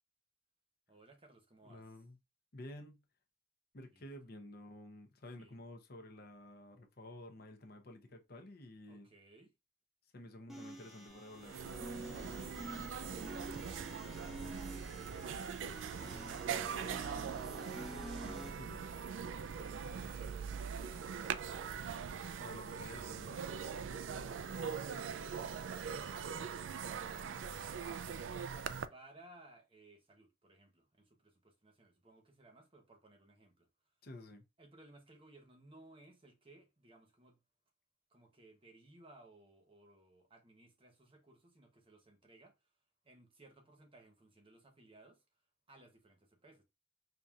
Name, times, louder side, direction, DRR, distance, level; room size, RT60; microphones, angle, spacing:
voice 1, 0.9-1.8 3.9-4.0 5.4-5.6 8.9-9.5 12.2-14.9 18.1-22.5 25.5-28.2 28.9-33.7 34.6-37.4 38.1-42.5 43.0-45.2 45.7-46.6, right 2 dB, 30° right, 0.9 m, -62 dB
voice 2, 1.6-2.2 2.5-3.0 3.7-9.1 10.1-11.6 18.5-18.8 22.4-23.4 24.8-25.1 34.0-34.4, left 1 dB, 55° left, 0.7 m, -51 dB
sound 1, 10.5-18.5, right 1 dB, ahead, 0.7 m, -49 dB
sound 2, 11.1-11.2 11.4-28.9, right 6 dB, 90° right, 0.4 m, -42 dB
5.4 x 2.7 x 2.4 m
head